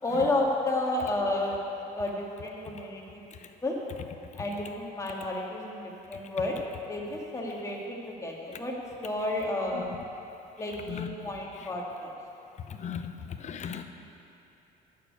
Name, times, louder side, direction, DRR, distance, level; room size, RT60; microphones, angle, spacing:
voice 1, 0.0-1.6 2.0-3.2 3.6-3.8 4.4-6.6 6.9-8.7 9.0-9.9 10.6-12.1, left 2 dB, 20° left, -2 dB, 1.9 m, -31 dB
voice 2, 13.4-13.8, left 7 dB, 45° left, 7 dB, 0.8 m, -35 dB
9.7 x 6.8 x 8.3 m, 2.7 s
cardioid pair, 110°, 17 cm